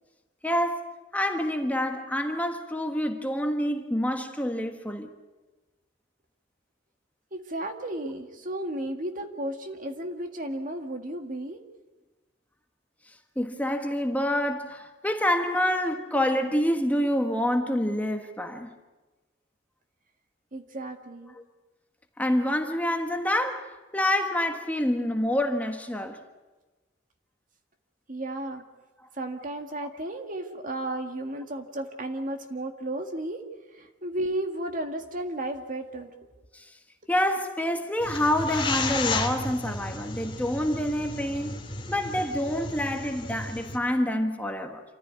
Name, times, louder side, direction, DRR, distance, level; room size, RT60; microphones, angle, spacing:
voice 1, 0.4-5.1 13.4-18.7 21.3-21.4 22.2-26.2 29.8-29.9 36.5-36.7 37.1-41.6 41.9-44.8, left 1 dB, 10° left, 1.4 m, -27 dB
voice 2, 7.3-11.6 20.5-21.3 28.1-28.7 29.1-33.4 33.7-36.1, right 1 dB, 45° right, 2.0 m, -33 dB
sound 1, 38.0-43.8, left 3 dB, 25° left, 2.4 m, -33 dB
27.5 x 14.5 x 9.6 m
head